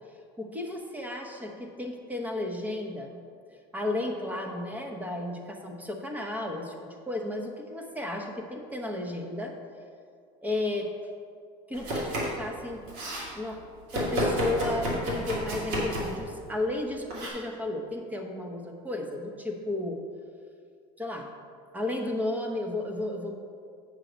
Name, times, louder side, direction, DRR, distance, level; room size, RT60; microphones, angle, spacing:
voice 1, 0.4-3.2 3.7-9.6 10.4-10.9 11.7-12.9 13.3-13.6 13.9-20.0 21.0-21.3 21.7-23.3, left 2 dB, 10° right, 2 dB, 0.9 m, -33 dB
Domestic sounds home sounds, 11.7-12.4 12.7-13.3 13.9-16.2 17.1-17.3, equal, 75° right, 2.3 m, -30 dB
8.1 x 5.6 x 5.1 m, 2.2 s
cardioid pair, 140°, 15 cm